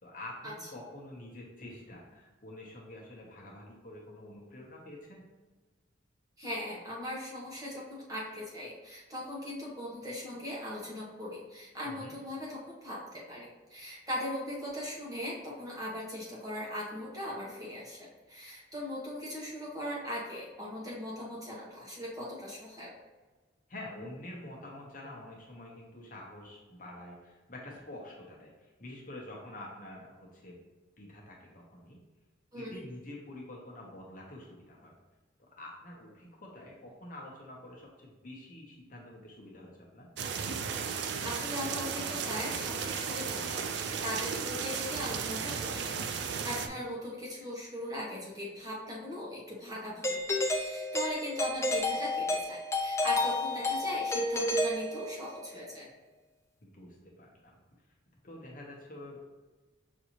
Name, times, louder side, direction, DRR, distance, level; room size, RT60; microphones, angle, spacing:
voice 1, 0.0-5.2 11.8-12.1 23.7-30.6 31.0-32.0 32.5-34.9 35.6-40.1 46.7-46.8 56.6-57.6 58.2-59.2, left 1 dB, 45° left, -2 dB, 0.9 m, -47 dB
voice 2, 6.4-22.9 32.5-32.7 41.2-55.9, left 1 dB, 20° right, -5 dB, 0.9 m, -39 dB
sound 1, 40.2-46.7, right 6 dB, 60° right, 0.3 m, -35 dB
Doorbell, 50.0-55.5, left 2 dB, 15° left, 0.3 m, -31 dB
6.1 x 2.7 x 3.0 m, 1.3 s
head